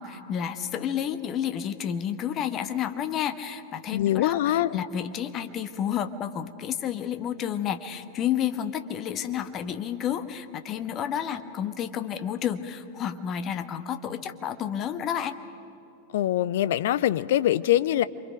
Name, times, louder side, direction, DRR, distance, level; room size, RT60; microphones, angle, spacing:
voice 1, 0.0-15.4, left 9 dB, 30° left, 9 dB, 1.1 m, -30 dB
voice 2, 3.9-4.8 16.1-18.0, left 13 dB, 55° left, 16 dB, 0.5 m, -23 dB
27.5 x 24.5 x 5.2 m, 2.9 s
figure-of-eight pair, 90°, 0 cm